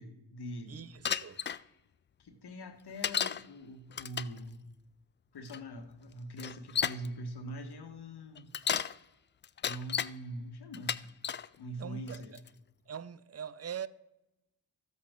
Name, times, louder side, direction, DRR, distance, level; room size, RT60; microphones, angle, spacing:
voice 1, 0.0-0.9 2.2-4.6 5.3-8.5 9.6-11.0 11.6-12.4, right 1 dB, 55° left, 1.6 m, -43 dB
voice 2, 0.7-1.4 11.8-12.4 12.9-13.9, right 8 dB, 35° right, 0.6 m, -42 dB
Bicycle, 1.0-1.6 3.0-3.4 3.9-4.4 5.5-5.6 6.4-7.1 8.4-8.9 9.4-10.1 10.7-11.5 12.1-12.5, left 8 dB, 25° left, 0.3 m, -33 dB
12.5 x 8.1 x 3.7 m
supercardioid pair, 45°, 46 cm